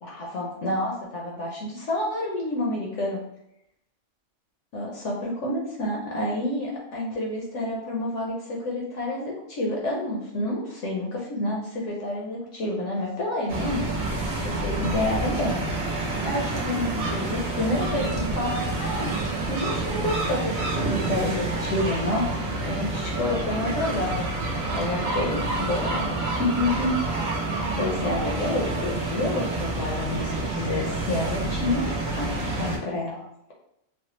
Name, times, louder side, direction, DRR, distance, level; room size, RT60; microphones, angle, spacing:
voice 1, 0.0-3.2 4.7-19.1 19.5-24.3 24.7-26.9 27.2-33.5, left 1 dB, 65° left, -2 dB, 0.9 m, -29 dB
sound 1, 13.5-32.8, right 2 dB, 70° right, 1.1 m, -28 dB
3.2 x 2.1 x 3.0 m, 0.81 s
omnidirectional pair, 1.5 m